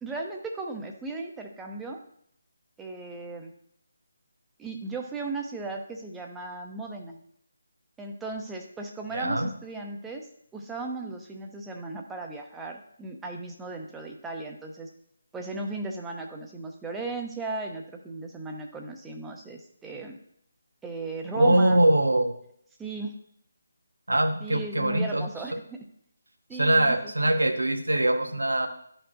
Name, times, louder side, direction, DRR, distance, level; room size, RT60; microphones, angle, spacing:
voice 1, 0.0-2.0 2.8-3.5 4.6-7.2 8.0-10.3 10.5-14.9 15.3-20.2 20.8-21.8 22.8-23.1 24.4-25.9 26.5-27.1, right 3 dB, 5° right, 2 dB, 0.7 m, -36 dB
voice 2, 9.1-9.5 21.3-22.3 24.1-25.2 26.6-28.7, right 1 dB, 70° right, 6 dB, 1.1 m, -22 dB
12.5 x 4.5 x 2.7 m, 0.68 s
figure-of-eight pair, 150°, 0 cm